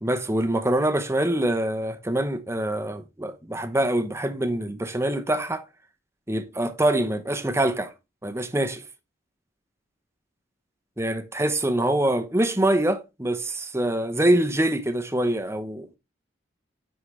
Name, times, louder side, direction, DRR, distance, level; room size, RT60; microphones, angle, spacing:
voice 1, 0.0-5.6 6.3-7.9 8.2-8.8 11.0-15.9, right 1 dB, 15° right, 0.9 m, -24 dB
10.0 x 5.0 x 3.3 m
head